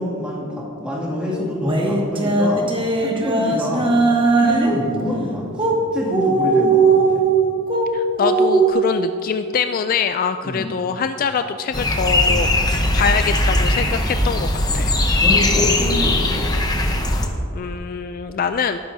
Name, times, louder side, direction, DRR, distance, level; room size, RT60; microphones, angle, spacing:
voice 1, 0.0-2.6 3.0-4.0 4.4-7.2 10.4-10.7 15.2-16.5, left 1 dB, 5° right, -5 dB, 2.3 m, -26 dB
sound 1, 1.6-4.8 5.5-5.8 6.1-7.9 8.2-8.7, right 4 dB, 25° right, 1.2 m, -18 dB
voice 2, 7.9-14.5 14.7-14.9 17.5-18.8, left 6 dB, 45° left, 9 dB, 0.3 m, -24 dB
sound 2, 11.7-17.3, left 1 dB, 20° left, 0.9 m, -19 dB
18.0 x 9.5 x 2.7 m, 2.6 s
head